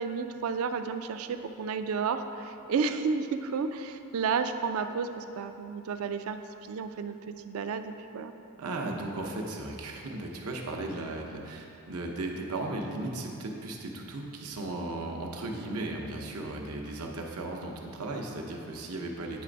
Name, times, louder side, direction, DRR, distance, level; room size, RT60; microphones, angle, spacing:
voice 1, 0.0-8.3, right 5 dB, 70° right, 9 dB, 0.4 m, -32 dB
voice 2, 8.6-19.4, right 2 dB, 90° right, 1 dB, 0.8 m, -36 dB
8.7 x 3.3 x 5.1 m, 2.8 s
head